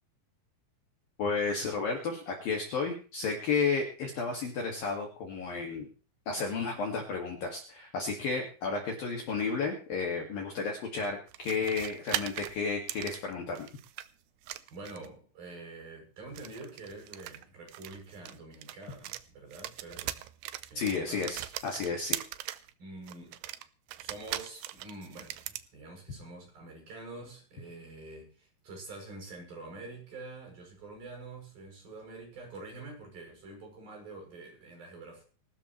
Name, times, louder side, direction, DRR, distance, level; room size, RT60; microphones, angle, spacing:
voice 1, 1.2-5.9 6.3-13.7 20.7-22.2, left 4 dB, 55° left, 1 dB, 3.4 m, -32 dB
sound 1, 11.3-14.1 14.4-15.2 16.3-19.2 19.5-22.7 23.1-25.7, right 14 dB, 85° right, 2.4 m, -40 dB
voice 2, 14.7-20.2 20.6-21.3 22.8-23.4 24.0-35.2, right 3 dB, 45° right, 1 dB, 9.2 m, -46 dB
24.0 x 13.0 x 3.3 m, 0.38 s
omnidirectional pair, 5.9 m